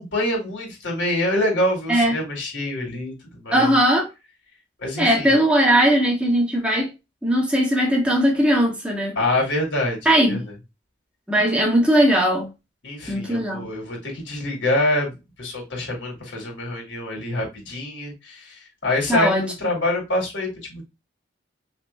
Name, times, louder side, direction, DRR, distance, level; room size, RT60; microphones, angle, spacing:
voice 1, 0.0-3.7 4.8-5.4 9.2-10.0 10.3-10.5 12.8-15.1 15.4-20.8, left 1 dB, 80° left, 2.5 m, -26 dB
voice 2, 3.5-4.0 5.0-6.9 7.2-9.1 10.0-10.4 11.3-12.5 13.1-13.7 19.1-19.4, equal, 5° right, 1.4 m, -19 dB
5.7 x 3.1 x 2.3 m
head